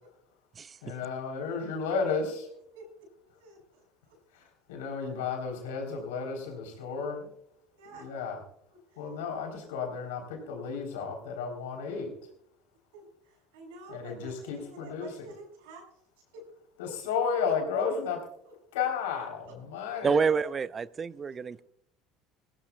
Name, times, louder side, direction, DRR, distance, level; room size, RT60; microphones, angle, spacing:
voice 1, 0.8-2.5 4.7-7.3 7.9-8.4 9.0-12.1 13.9-15.3 16.8-18.2 18.7-20.3, left 5 dB, 80° left, 3.6 m, -33 dB
voice 2, 3.2-4.2 7.7-8.2 8.9-9.0 12.9-15.8 16.3-16.4 16.8-16.9 17.4-17.5 18.4-18.5 18.8-18.9 20.4-20.5, right 3 dB, 80° right, 6.1 m, -49 dB
voice 3, 20.0-21.6, right 6 dB, 30° right, 0.6 m, -28 dB
20.0 x 16.0 x 2.3 m
hypercardioid pair, 75°, 0 cm